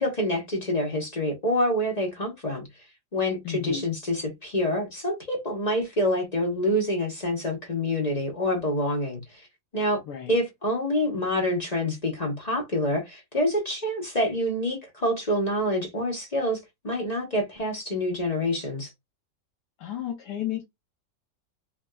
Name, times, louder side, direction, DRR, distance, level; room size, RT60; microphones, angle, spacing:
voice 1, 0.0-2.6 3.1-9.2 9.7-10.0 10.3-16.6 16.8-18.9, left 1 dB, 30° left, 0.8 m, -27 dB
voice 2, 3.4-3.8 10.1-10.4 19.8-20.6, left 10 dB, 75° left, 1.2 m, -32 dB
3.4 x 2.6 x 2.2 m
omnidirectional pair, 1.9 m